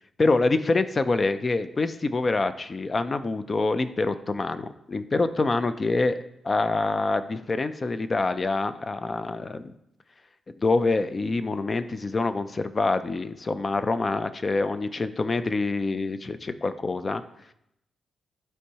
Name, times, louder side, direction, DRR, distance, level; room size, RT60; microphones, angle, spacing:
voice 1, 0.2-6.2 6.4-9.7 10.6-17.2, left 3 dB, 30° left, 11 dB, 0.4 m, -26 dB
11.5 x 4.5 x 2.8 m, 0.79 s
wide cardioid pair, 135°, 0 cm